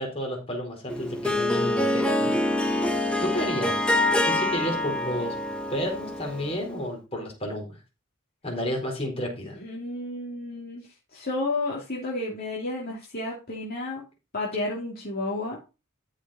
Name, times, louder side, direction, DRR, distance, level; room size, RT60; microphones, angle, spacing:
voice 1, 0.0-2.3 3.2-3.9 4.2-5.3 5.7-7.8 8.4-9.6, equal, 25° left, 0 dB, 4.4 m, -31 dB
Harp, 0.9-6.7, left 1 dB, 5° left, 1.1 m, -26 dB
voice 2, 9.5-10.9 11.1-14.0 14.3-15.6, left 2 dB, 45° left, -4 dB, 2.9 m, -31 dB
13.5 x 5.3 x 4.3 m, 0.29 s
head